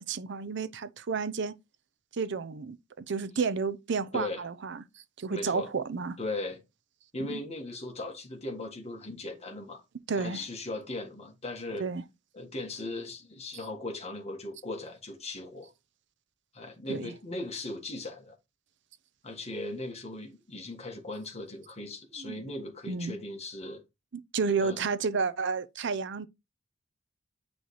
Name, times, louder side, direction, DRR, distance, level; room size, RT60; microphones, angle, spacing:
voice 1, 0.0-1.6 2.1-6.2 7.2-7.4 10.1-10.4 11.8-12.0 16.9-17.1 22.2-22.4 22.9-23.2 24.1-26.3, right 5 dB, 65° right, 0.6 m, -31 dB
voice 2, 5.3-5.7 6.2-6.6 7.1-9.8 10.1-11.8 12.3-15.7 16.5-18.3 19.2-23.8 24.6-24.8, left 2 dB, 35° left, 1.5 m, -38 dB
9.2 x 3.2 x 4.1 m
head